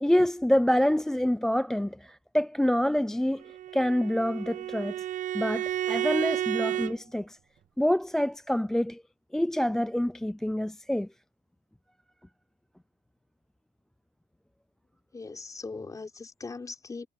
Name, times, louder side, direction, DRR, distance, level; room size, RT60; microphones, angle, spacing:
voice 1, 0.0-3.4 3.7-5.1 5.3-7.4 7.8-9.0 9.3-11.1, equal, 5° left, 0.3 m, -26 dB
Bowed string instrument, 3.4-6.9, right 12 dB, 45° right, 0.6 m, -31 dB
voice 2, 15.1-17.1, left 4 dB, 20° left, 4.5 m, -40 dB
cardioid pair, 140°, 19 cm